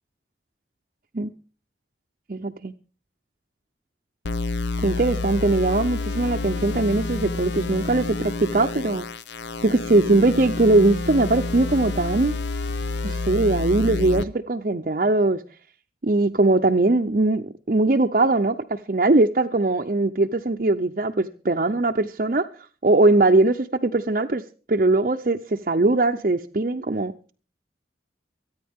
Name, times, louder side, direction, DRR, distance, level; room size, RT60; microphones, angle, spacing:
voice 1, 2.3-2.7 4.8-9.1 9.6-12.3 13.0-15.4 16.0-22.5 22.8-24.4 24.7-27.1, right 2 dB, 45° right, 2 dB, 0.6 m, -21 dB
sound 1, 4.3-14.2, left 3 dB, 75° left, 0.8 m, -29 dB
23.5 x 9.5 x 3.6 m, 0.39 s
head